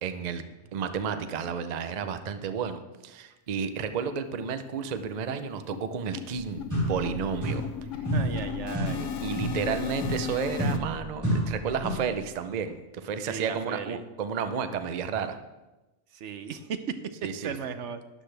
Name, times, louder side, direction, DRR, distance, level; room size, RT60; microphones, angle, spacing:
voice 1, 0.0-7.6 9.0-15.4 17.2-17.5, right 6 dB, 45° right, 9 dB, 0.6 m, -32 dB
sound 1, 3.5-3.6 4.0-4.1 4.4-4.6 4.8-10.8, left 9 dB, 75° left, 1.0 m, -37 dB
sound 2, 6.4-6.5 6.7-12.2, right 1 dB, 15° right, 3.6 m, -30 dB
voice 2, 8.1-9.0 13.3-14.0 16.1-17.0 17.4-18.0, right 7 dB, 70° right, 10 dB, 1.0 m, -36 dB
12.5 x 9.9 x 3.3 m, 1.1 s
omnidirectional pair, 1.3 m